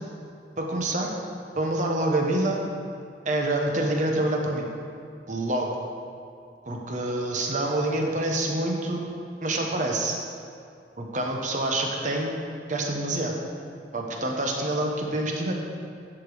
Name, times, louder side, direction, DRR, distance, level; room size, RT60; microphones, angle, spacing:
voice 1, 0.6-1.1 1.5-2.7 3.2-4.7 5.3-5.8 6.7-9.1 9.4-10.2 11.0-12.4 12.7-13.3 13.9-15.5, right 1 dB, 45° right, 1 dB, 1.0 m, -26 dB
11.0 x 5.0 x 4.9 m, 2.4 s
head